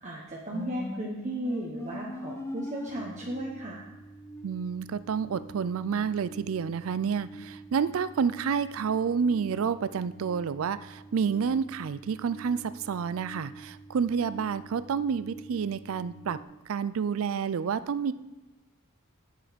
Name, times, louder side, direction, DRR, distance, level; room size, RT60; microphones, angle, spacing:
voice 1, 0.0-3.8, right 1 dB, 30° right, -3 dB, 1.1 m, -35 dB
sound 1, 0.5-16.4, right 1 dB, 10° left, 0.6 m, -44 dB
voice 2, 4.4-16.4 16.7-18.1, right 6 dB, 65° right, 15 dB, 0.4 m, -29 dB
8.7 x 7.5 x 5.1 m, 1.1 s
head